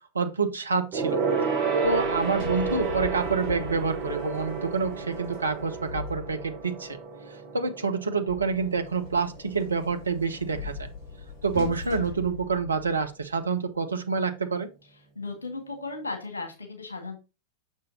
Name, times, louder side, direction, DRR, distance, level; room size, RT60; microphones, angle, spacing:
voice 1, 0.1-1.2 1.8-7.0 7.5-10.9 11.4-14.7, right 4 dB, 75° right, 8 dB, 0.7 m, -27 dB
Gong, 0.9-10.7 11.0-11.3 11.6-11.7, right 5 dB, 40° right, 4.1 m, -31 dB
Sliding door, 1.8-6.7 8.3-13.2, left 4 dB, 40° left, 3.7 m, -40 dB
voice 2, 15.1-17.2, left 3 dB, 75° left, 4 dB, 1.7 m, -36 dB
6.4 x 6.3 x 2.7 m, 0.28 s
figure-of-eight pair, 90°, 0 cm